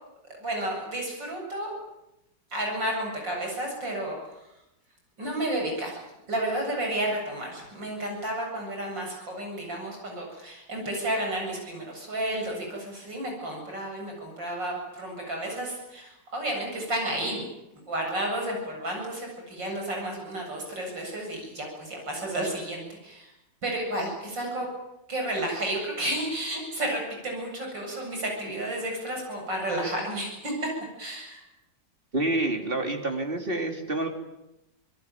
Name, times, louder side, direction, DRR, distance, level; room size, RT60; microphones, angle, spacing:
voice 1, 0.4-1.7 2.5-4.2 5.2-6.0 6.3-17.5 17.9-23.3 23.6-24.7 25.1-30.7 31.0-31.4, right 1 dB, 75° right, 1 dB, 8.7 m, -32 dB
voice 2, 32.1-34.1, right 2 dB, 30° right, 4 dB, 3.4 m, -28 dB
26.0 x 20.5 x 9.2 m, 0.91 s
omnidirectional pair, 2.0 m